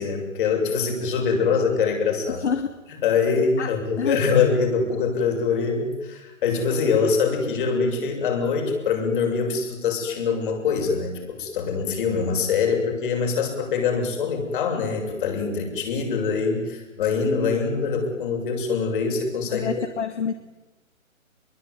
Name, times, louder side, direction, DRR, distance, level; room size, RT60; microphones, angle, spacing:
voice 1, 0.0-2.4 3.0-19.7, left 5 dB, 40° left, 3 dB, 7.4 m, -24 dB
voice 2, 2.3-2.8 3.6-4.2 19.5-20.3, left 6 dB, 55° left, 9 dB, 2.2 m, -27 dB
26.5 x 23.0 x 9.6 m, 1.1 s
hypercardioid pair, 150°, 41 cm